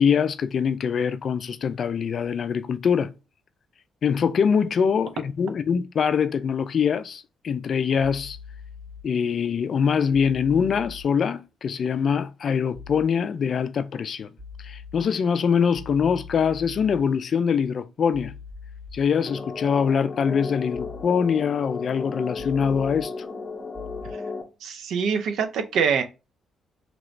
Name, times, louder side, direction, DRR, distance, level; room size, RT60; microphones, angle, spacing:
voice 1, 0.0-3.1 4.0-8.4 9.0-14.3 14.6-18.3 18.9-23.1, left 6 dB, 55° left, 0.3 m, -23 dB
sound 1, 8.0-9.0 10.1-11.0 12.7-13.0 14.4-15.0 15.7-17.0 18.1-19.0 20.7-21.0 22.4-23.0 23.7-24.1, left 5 dB, 50° right, 2.0 m, -42 dB
sound 2, 19.3-24.4, left 4 dB, 25° left, 0.7 m, -34 dB
voice 2, 24.6-26.0, right 6 dB, 75° right, 0.5 m, -24 dB
3.1 x 2.9 x 2.5 m
cardioid pair, 90°, 0 cm